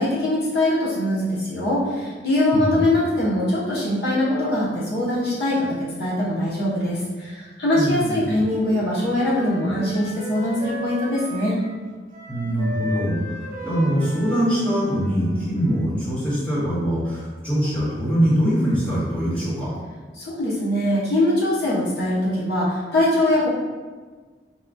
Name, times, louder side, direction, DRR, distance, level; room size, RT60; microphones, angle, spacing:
voice 1, 0.0-11.6 20.2-23.5, left 1 dB, 65° left, -7 dB, 0.8 m, -22 dB
voice 2, 2.5-2.8 7.7-8.2 12.3-19.7, equal, 10° left, -11 dB, 1.1 m, -23 dB
Wind instrument woodwind instrument, 8.2-11.9 12.1-16.0, equal, 45° right, 0.5 m, -36 dB
4.6 x 2.2 x 2.6 m, 1.4 s
head